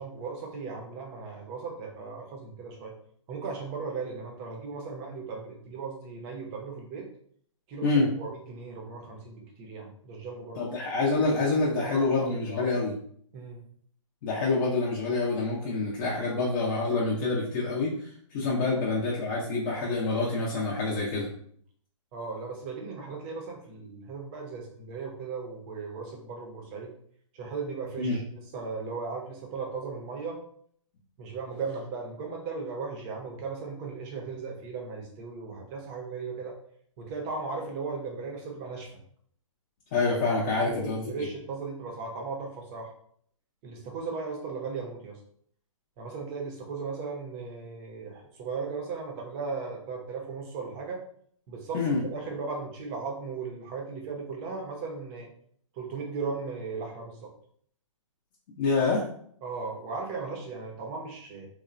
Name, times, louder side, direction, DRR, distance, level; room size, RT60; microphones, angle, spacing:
voice 1, 0.0-2.9 3.3-7.1 7.7-7.9 8.2-10.6 11.8-12.6 13.3-13.6 22.1-26.9 27.3-30.4 31.2-36.6 37.0-38.9 40.5-42.9 43.6-45.2 46.0-51.0 51.5-55.3 55.7-57.3 59.4-61.5, right 4 dB, 25° right, 1 dB, 0.5 m, -37 dB
voice 2, 10.6-12.9 14.2-21.3 28.0-28.2 39.9-41.0 51.7-52.0 58.6-59.0, left 3 dB, 35° left, -5 dB, 0.6 m, -27 dB
2.9 x 2.0 x 2.4 m, 0.62 s
hypercardioid pair, 135°, 17 cm